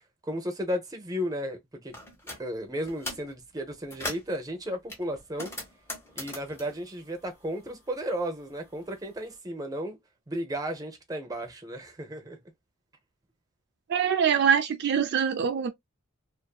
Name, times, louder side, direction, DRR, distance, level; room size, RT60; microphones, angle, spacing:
voice 1, 0.2-1.9 2.4-5.5 6.2-10.0 10.3-12.4, equal, 20° right, 0.7 m, -34 dB
sound 1, 1.9-2.4 2.8-3.3 3.7-4.4 4.9-7.8 8.1-9.2, left 1 dB, 15° left, 0.9 m, -40 dB
voice 2, 13.9-15.7, right 7 dB, 55° right, 0.4 m, -24 dB
2.5 x 2.5 x 2.2 m
head